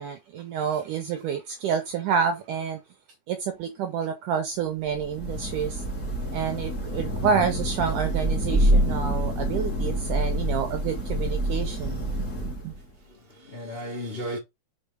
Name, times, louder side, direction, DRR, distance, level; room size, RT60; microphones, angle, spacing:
voice 1, 0.0-2.8 3.3-5.8 6.3-12.7, right 7 dB, 80° right, 1.8 m, -29 dB
Thunder / Rain, 4.9-12.9, right 1 dB, 40° left, 1.1 m, -27 dB
voice 2, 12.4-14.4, equal, 65° left, 0.5 m, -37 dB
6.7 x 4.7 x 5.0 m
omnidirectional pair, 4.8 m